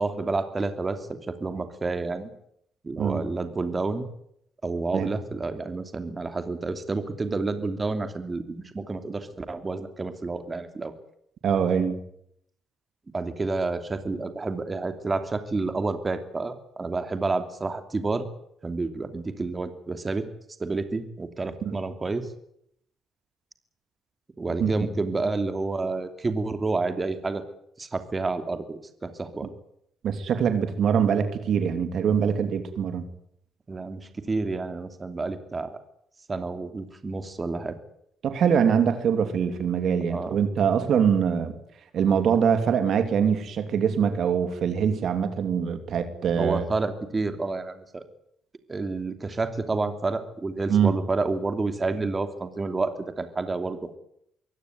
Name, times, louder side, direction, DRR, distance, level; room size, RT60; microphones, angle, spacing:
voice 1, 0.0-2.3 2.8-4.0 4.6-10.9 13.1-18.2 18.6-20.3 20.6-22.3 24.4-27.4 27.8-29.5 33.7-35.8 36.3-37.8 40.1-40.4 46.4-48.0 48.7-54.0, right 3 dB, 25° right, 9 dB, 2.9 m, -29 dB
voice 2, 11.4-12.0 21.6-21.8 24.6-24.7 30.0-33.1 38.2-41.5 41.9-46.6 50.7-51.0, right 7 dB, 65° right, 9 dB, 2.9 m, -23 dB
24.0 x 16.5 x 9.5 m, 0.72 s
cardioid pair, 90°, 0 cm